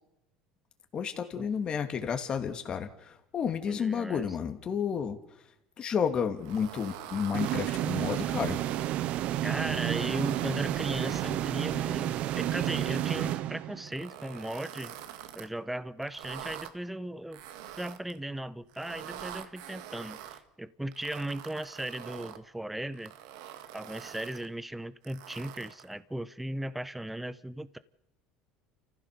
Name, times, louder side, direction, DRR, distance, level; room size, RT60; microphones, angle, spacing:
voice 1, 0.9-5.5 5.8-8.6, left 7 dB, 40° left, 2.7 m, -31 dB
voice 2, 3.7-4.2 9.4-14.9 15.3-17.4 17.7-23.1 23.7-27.8, right 1 dB, 5° right, 1.0 m, -37 dB
sound 1, 6.4-9.0 9.5-11.8 12.2-13.3 13.9-15.5 16.0-16.7 17.3-18.2 18.7-20.4 20.9-22.4 22.9-24.5 25.0-25.9, right 11 dB, 80° right, 2.0 m, -45 dB
sound 2, 7.3-14.1, right 13 dB, 60° right, 0.9 m, -31 dB
29.0 x 15.0 x 6.8 m
supercardioid pair, 105°, 2 cm